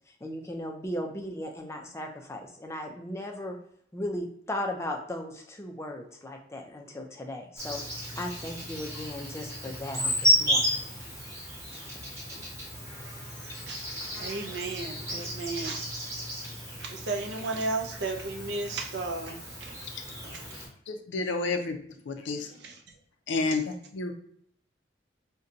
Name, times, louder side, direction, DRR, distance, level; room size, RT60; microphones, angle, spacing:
voice 1, 0.2-3.6 3.9-10.8 11.7-12.2, left 1 dB, 15° left, 3 dB, 0.4 m, -37 dB
Insect, 7.6-20.7, equal, 15° right, 1.0 m, -33 dB
voice 2, 13.5-13.9 14.2-15.9 16.7-19.8 20.3-20.6 22.3-23.0 23.5-23.6, right 3 dB, 60° right, 5 dB, 0.5 m, -35 dB
voice 3, 20.9-21.8 22.1-22.5 23.3-24.1, left 3 dB, 75° left, 6 dB, 0.5 m, -30 dB
2.7 x 2.2 x 3.8 m, 0.66 s
head